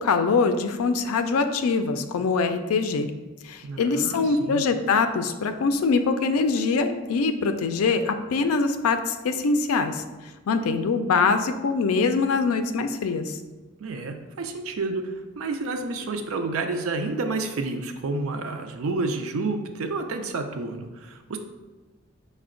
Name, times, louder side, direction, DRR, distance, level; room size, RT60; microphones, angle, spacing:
voice 1, 0.0-3.1 3.4-10.0 10.5-13.4, left 4 dB, 85° left, 8 dB, 0.4 m, -23 dB
voice 2, 3.6-4.6 13.8-21.4, right 3 dB, 75° right, 6 dB, 0.4 m, -30 dB
5.7 x 2.1 x 3.7 m, 1.2 s
head